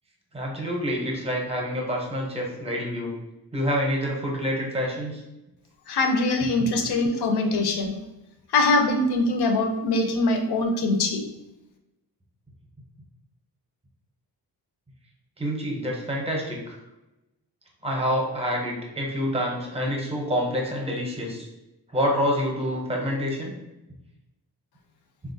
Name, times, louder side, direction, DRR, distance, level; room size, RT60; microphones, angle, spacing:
voice 1, 0.3-3.1 3.5-5.2 15.4-16.8 17.8-21.5 21.9-23.5, equal, 15° right, -1 dB, 0.6 m, -27 dB
voice 2, 5.9-8.0 8.5-11.2, left 2 dB, 70° left, 5 dB, 0.6 m, -23 dB
3.6 x 2.3 x 2.5 m, 0.94 s
wide cardioid pair, 150°, 41 cm